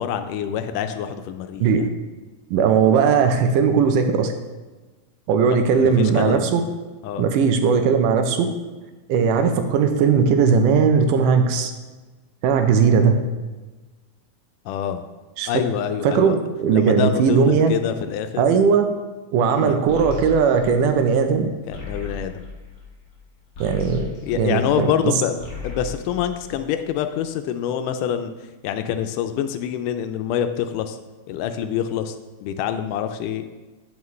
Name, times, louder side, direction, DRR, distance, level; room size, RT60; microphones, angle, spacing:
voice 1, 0.0-1.8 5.5-6.5 7.0-7.3 14.7-15.0 15.5-16.4 16.7-18.5 19.5-19.8 21.7-22.4 24.2-28.3 28.6-31.0 31.3-32.1 32.4-33.5, left 9 dB, 80° left, 8 dB, 2.0 m, -26 dB
voice 2, 2.5-4.3 5.3-6.6 7.2-8.5 9.1-11.7 12.4-13.1 15.4-15.5 16.0-17.7 18.4-18.9 19.3-21.5 23.6-24.9, right 6 dB, 80° right, 7 dB, 2.2 m, -18 dB
sound 1, 19.9-25.0 25.3-27.1, left 5 dB, 50° left, 1.4 m, -36 dB
8.2 x 7.2 x 3.1 m, 1.2 s
omnidirectional pair, 3.7 m